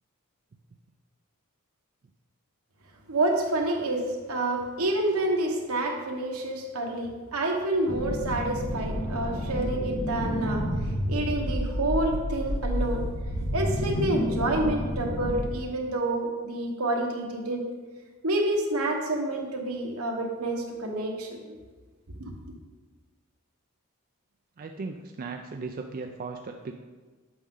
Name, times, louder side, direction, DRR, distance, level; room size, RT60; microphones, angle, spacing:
voice 1, 3.1-4.0 4.3-10.6 11.1-13.0 13.5-17.7 18.2-21.6 22.2-22.3, right 1 dB, 75° right, 1 dB, 1.3 m, -28 dB
sound 1, 7.9-15.5, equal, 65° left, 1.4 m, -30 dB
voice 2, 24.6-26.7, right 4 dB, 40° right, 4 dB, 0.4 m, -37 dB
8.4 x 6.2 x 3.8 m, 1.3 s
head